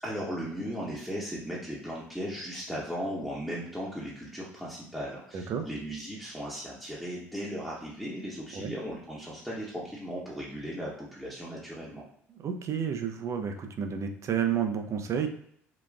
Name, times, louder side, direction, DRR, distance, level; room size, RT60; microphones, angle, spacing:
voice 1, 0.0-12.0, equal, ahead, -7 dB, 0.8 m, -37 dB
voice 2, 5.3-5.7 8.5-8.7 12.4-15.3, right 8 dB, 45° right, 6 dB, 0.5 m, -30 dB
3.8 x 2.3 x 2.3 m, 0.66 s
hypercardioid pair, 55°, 7 cm